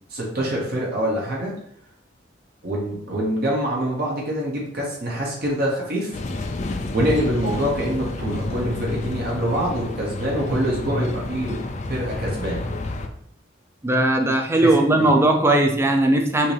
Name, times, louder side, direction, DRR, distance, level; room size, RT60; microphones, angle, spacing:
voice 1, 0.1-1.5 2.6-6.1 6.9-11.6 11.9-12.6 14.8-15.1, right 1 dB, 55° right, -3 dB, 1.1 m, -25 dB
sound 1, 6.1-13.1, left 2 dB, 40° left, 0.4 m, -30 dB
voice 2, 13.8-16.5, right 1 dB, 15° right, 3 dB, 0.5 m, -18 dB
5.6 x 2.8 x 3.3 m, 0.69 s
head